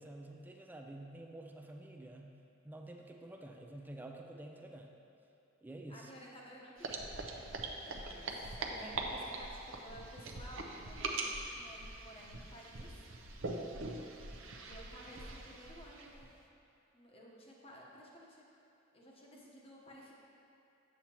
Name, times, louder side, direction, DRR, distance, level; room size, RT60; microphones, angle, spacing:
voice 1, 0.0-2.3 2.6-4.9 5.6-6.2 8.7-9.0, right 1 dB, 10° right, 1 dB, 0.4 m, -49 dB
voice 2, 5.9-12.9 14.6-16.3 16.9-18.5 18.9-20.2, equal, 30° left, -4 dB, 1.0 m, -55 dB
sound 1, 6.8-16.3, right 2 dB, 65° right, 0.6 m, -42 dB
8.1 x 7.2 x 3.0 m, 2.7 s
head